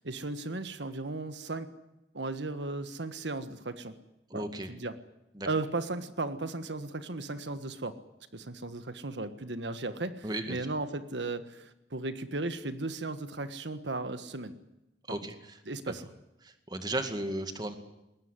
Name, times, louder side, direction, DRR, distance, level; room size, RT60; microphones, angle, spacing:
voice 1, 0.0-1.7 2.1-4.0 4.3-5.0 5.4-8.0 8.3-14.6 15.7-16.0, right 2 dB, 85° right, 11 dB, 1.5 m, -36 dB
voice 2, 4.3-4.7 5.3-5.5 10.2-10.6 15.1-15.6 15.9-16.0 16.4-17.7, right 1 dB, 25° right, 8 dB, 2.2 m, -35 dB
21.0 x 19.0 x 9.9 m, 0.92 s
head